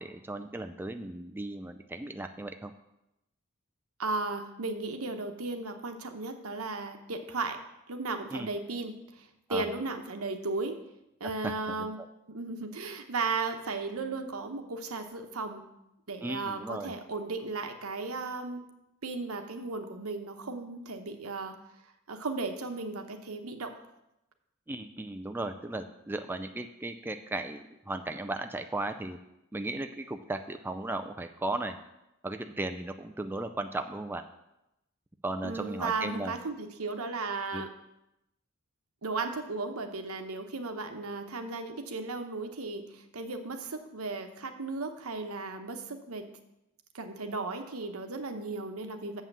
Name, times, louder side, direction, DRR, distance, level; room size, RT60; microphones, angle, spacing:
voice 1, 0.0-2.7 8.3-8.5 9.5-9.7 11.2-12.1 16.2-16.9 24.7-29.2 29.5-31.8 32.2-34.2 35.2-36.3 37.5-37.6, right 2 dB, 10° right, 6 dB, 0.4 m, -36 dB
voice 2, 4.0-7.6 7.9-10.8 11.2-15.7 16.1-18.7 19.0-21.6 22.1-23.8 35.4-37.7 39.0-46.3 46.9-49.2, right 3 dB, 85° right, 6 dB, 1.0 m, -35 dB
7.4 x 5.7 x 7.3 m, 0.88 s
head